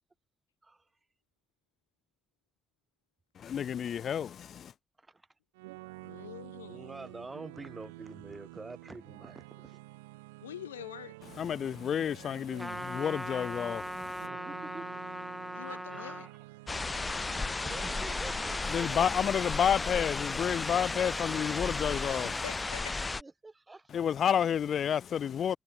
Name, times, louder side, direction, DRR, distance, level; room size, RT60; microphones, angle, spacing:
voice 1, 3.4-4.7 11.4-14.3 18.7-22.3 23.9-25.6, left 8 dB, 60° left, 0.6 m, -30 dB
sound 1, 5.5-19.2, right 23 dB, 80° right, 2.2 m, -50 dB
voice 2, 6.0-6.9 10.4-11.2 15.5-16.3 21.9-23.1, left 11 dB, 85° left, 1.1 m, -45 dB
voice 3, 6.7-9.8 14.2-15.0 15.6-16.3 17.7-19.0 23.2-24.0, right 3 dB, 25° right, 2.2 m, -46 dB
Trumpet, 12.6-16.3, equal, ahead, 0.6 m, -39 dB
forest with river in background, 16.7-23.2, left 3 dB, 30° left, 1.3 m, -34 dB
hypercardioid pair, 40°, 0 cm